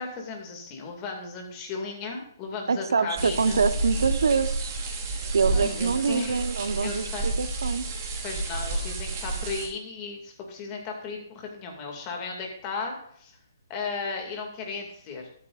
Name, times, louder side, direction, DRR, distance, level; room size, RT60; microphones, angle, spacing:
voice 1, 0.0-3.7 5.5-6.4 6.8-7.2 8.2-13.3 13.7-15.3, left 4 dB, 20° left, 1 dB, 2.4 m, -35 dB
voice 2, 2.7-4.8 5.3-7.8, right 5 dB, 85° right, 11 dB, 1.1 m, -25 dB
sound 1, 3.1-9.7, right 3 dB, 30° right, 2.6 m, -30 dB
13.5 x 12.5 x 2.6 m, 0.66 s
hypercardioid pair, 165°, 2 cm